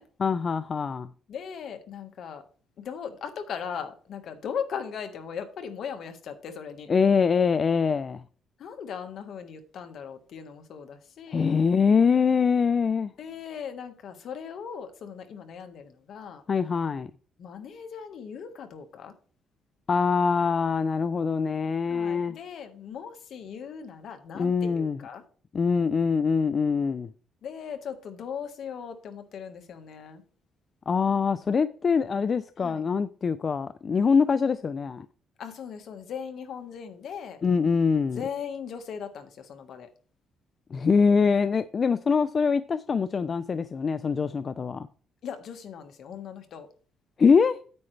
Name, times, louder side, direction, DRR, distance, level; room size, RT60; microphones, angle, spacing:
voice 1, 0.2-1.1 6.9-8.2 11.3-13.1 16.5-17.1 19.9-22.4 24.3-25.0 25.5-27.1 30.9-35.1 37.4-38.2 40.7-44.9 47.2-47.6, left 5 dB, 45° left, 0.4 m, -24 dB
voice 2, 1.3-2.4 2.8-6.9 8.6-11.5 13.2-16.4 17.4-19.1 21.9-25.2 27.4-30.2 32.6-32.8 35.4-37.4 38.1-39.9 45.2-46.7, left 7 dB, 65° left, 1.5 m, -38 dB
9.5 x 8.8 x 3.3 m
cardioid pair, 90°, 0 cm